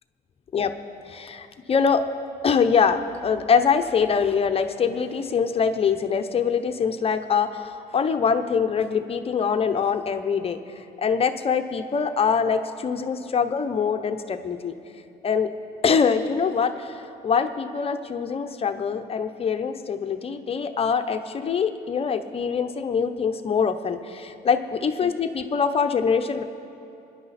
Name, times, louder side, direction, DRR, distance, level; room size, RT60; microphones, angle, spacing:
voice 1, 1.1-2.0 2.4-10.6 11.0-14.7 15.2-15.5 15.8-26.4, left 6 dB, 35° left, 8 dB, 0.8 m, -24 dB
25.5 x 10.5 x 4.2 m, 2.7 s
cardioid pair, 110°, 17 cm